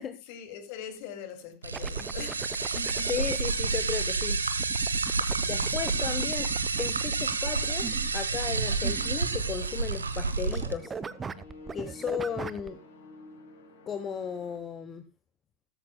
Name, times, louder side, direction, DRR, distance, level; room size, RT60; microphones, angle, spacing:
voice 1, 0.2-3.3 5.9-6.1, left 7 dB, 45° left, 2.4 m, -43 dB
sound 1, 1.6-10.7, right 4 dB, 75° right, 1.1 m, -29 dB
sound 2, 1.7-3.4 4.6-9.7 9.9-10.3 10.5-12.7, right 5 dB, 15° right, 0.6 m, -39 dB
voice 2, 3.1-4.4 5.4-6.5 6.8-10.9 11.7-12.8 13.9-15.0, left 7 dB, 25° left, 1.1 m, -35 dB
sound 3, 8.3-14.6, left 2 dB, 65° left, 3.6 m, -48 dB
15.0 x 14.0 x 2.2 m
figure-of-eight pair, 90°, 0 cm